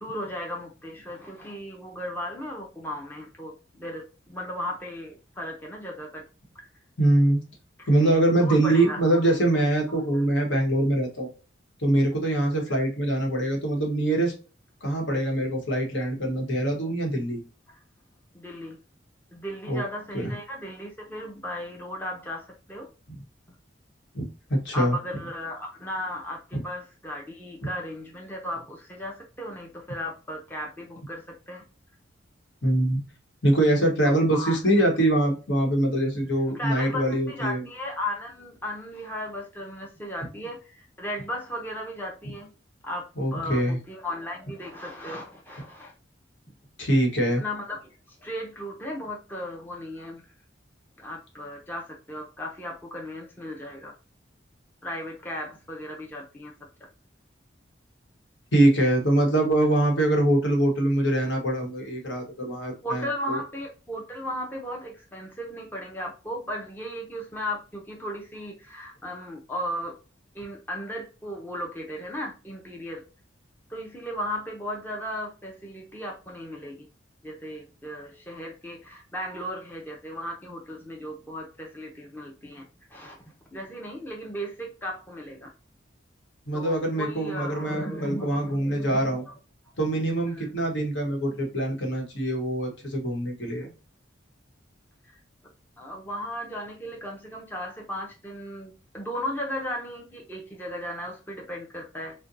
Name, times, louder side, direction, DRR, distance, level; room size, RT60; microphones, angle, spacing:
voice 1, 0.0-6.2 6.5-6.6 7.8-9.4 9.9-10.2 12.6-12.8 18.3-18.8 19.3-22.9 24.7-31.6 34.0-34.6 36.5-42.5 42.8-43.1 43.3-45.9 47.4-50.2 51.0-53.9 54.8-56.5 62.8-69.9 70.3-73.0 73.7-76.9 77.2-83.2 83.5-85.5 86.5-89.3 90.3-90.5 91.3-91.4 95.1-95.2 95.8-102.1, equal, 10° left, -1 dB, 0.5 m, -36 dB
voice 2, 7.0-7.4 7.9-11.3 11.8-14.3 14.8-17.4 19.7-19.8 20.1-20.4 24.1-25.0 26.5-26.6 32.6-33.0 33.4-37.6 43.2-43.8 46.8-47.4 58.5-63.4 86.5-89.2 89.8-93.7, right 1 dB, 75° left, 1 dB, 1.1 m, -23 dB
4.2 x 2.1 x 2.5 m, 0.34 s
head